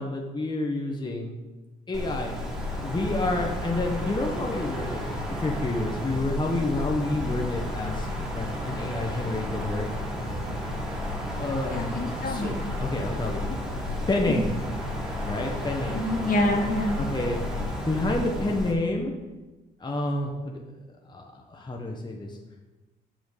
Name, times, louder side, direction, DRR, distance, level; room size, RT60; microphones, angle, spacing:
voice 1, 0.0-1.3 1.9-2.4 2.8-5.0 5.4-9.8 11.4-11.9 12.2-13.4 14.1-14.5 15.2-16.1 16.9-19.1 19.8-20.6 21.1-22.4, left 2 dB, 20° left, 1 dB, 1.3 m, -29 dB
Wind, 1.9-18.7, left 1 dB, ahead, 3.2 m, -32 dB
voice 2, 11.7-12.5 13.5-13.6 14.3-14.4 15.9-17.0, left 1 dB, 45° left, 0 dB, 2.4 m, -26 dB
8.5 x 6.3 x 6.8 m, 1.2 s
cardioid pair, 90°, 20 cm